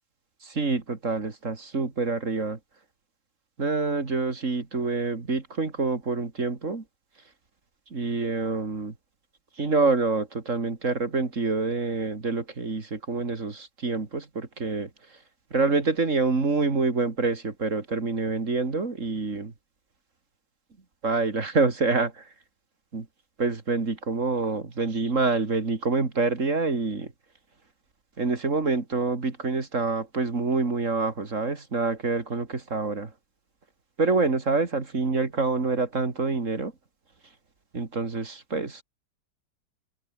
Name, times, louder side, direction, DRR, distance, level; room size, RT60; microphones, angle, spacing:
voice 1, 0.4-2.6 3.6-6.8 7.9-8.9 9.6-14.9 15.5-19.5 21.0-22.3 22.9-23.1 23.4-27.1 28.2-33.1 34.0-36.7 37.7-38.8, right 3 dB, 45° right, 2.9 m, -26 dB
omnidirectional pair, 1.9 m